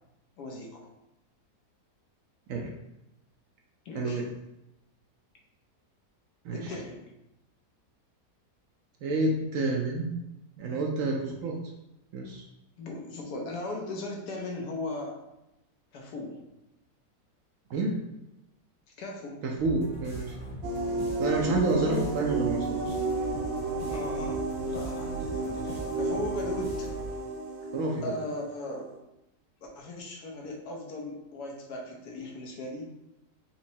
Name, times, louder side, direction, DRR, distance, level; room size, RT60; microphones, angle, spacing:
voice 1, 0.4-0.9 3.8-4.2 6.5-7.1 12.8-15.2 15.9-16.4 19.0-19.4 21.3-22.1 23.9-26.9 28.0-28.9 29.6-32.9, left 2 dB, 80° left, 0 dB, 1.3 m, -37 dB
voice 2, 3.9-4.3 6.4-6.8 9.0-10.1 10.6-11.6 12.1-12.4 17.7-17.9 19.4-20.4 21.2-23.0 27.7-28.2, right 2 dB, 70° right, 0 dB, 0.9 m, -29 dB
sound 1, 19.6-27.3, right 2 dB, 60° left, 1.8 m, -40 dB
sound 2, 20.6-29.0, right 3 dB, 85° right, 0.4 m, -32 dB
4.4 x 3.0 x 2.7 m, 0.88 s
omnidirectional pair, 1.7 m